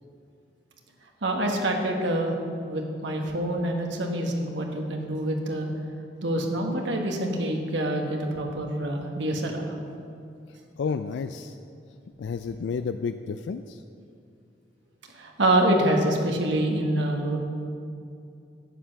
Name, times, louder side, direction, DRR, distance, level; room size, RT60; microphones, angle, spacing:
voice 1, 1.2-2.3 2.7-5.7 6.2-9.6 15.2-17.4, right 1 dB, 80° right, 1 dB, 1.4 m, -26 dB
voice 2, 10.8-11.5 12.2-13.8, left 5 dB, 75° left, 9 dB, 0.3 m, -31 dB
10.0 x 7.8 x 5.8 m, 2.5 s
head